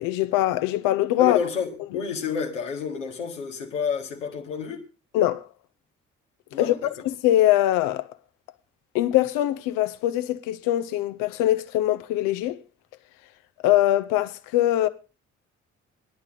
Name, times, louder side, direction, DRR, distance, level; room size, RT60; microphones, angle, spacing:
voice 1, 0.0-1.4 5.1-5.4 6.6-6.7 7.2-8.1 8.9-12.6 13.6-14.9, left 14 dB, 65° left, 0.9 m, -22 dB
voice 2, 1.2-4.8 6.5-6.9, left 6 dB, 80° left, 1.6 m, -29 dB
16.0 x 11.0 x 3.9 m
figure-of-eight pair, 40°, 36 cm